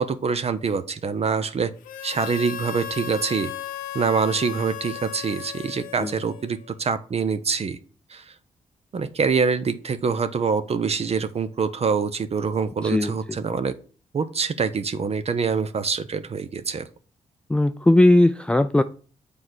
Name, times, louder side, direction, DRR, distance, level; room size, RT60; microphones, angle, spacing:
voice 1, 0.0-1.7 2.0-3.5 3.9-7.8 8.1-8.3 8.9-13.7 14.1-16.9, right 5 dB, 45° right, 0.6 m, -25 dB
Harmonica, 1.8-6.7, left 11 dB, 85° left, 0.7 m, -36 dB
voice 2, 17.5-18.8, left 1 dB, 5° left, 0.4 m, -18 dB
7.2 x 3.3 x 6.1 m
supercardioid pair, 50°, 14 cm